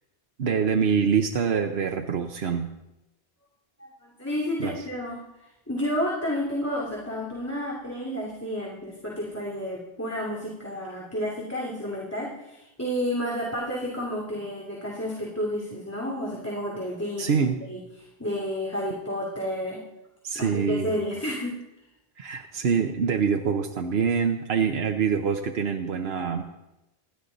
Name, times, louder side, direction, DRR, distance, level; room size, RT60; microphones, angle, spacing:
voice 1, 0.4-2.7 4.6-4.8 17.2-17.6 20.2-21.0 22.2-26.4, right 6 dB, 75° right, 4 dB, 1.1 m, -25 dB
voice 2, 3.8-5.2 5.7-17.3 17.6-19.8 20.3-21.6, equal, 15° left, -4 dB, 2.7 m, -31 dB
28.0 x 11.5 x 4.0 m, 0.96 s
omnidirectional pair, 1.1 m